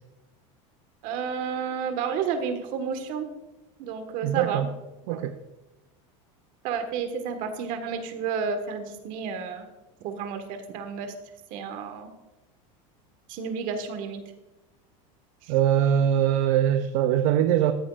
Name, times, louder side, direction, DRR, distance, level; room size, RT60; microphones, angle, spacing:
voice 1, 1.0-3.3 3.8-4.7 5.1-5.2 6.6-9.7 10.0-11.1 11.5-12.1 13.3-14.2 15.4-15.5, right 6 dB, 55° right, 7 dB, 1.5 m, -31 dB
voice 2, 4.2-4.7 5.1-5.4 15.5-17.7, right 10 dB, 70° right, 9 dB, 0.6 m, -22 dB
14.0 x 8.5 x 2.5 m, 1.0 s
supercardioid pair, 135°, 17 cm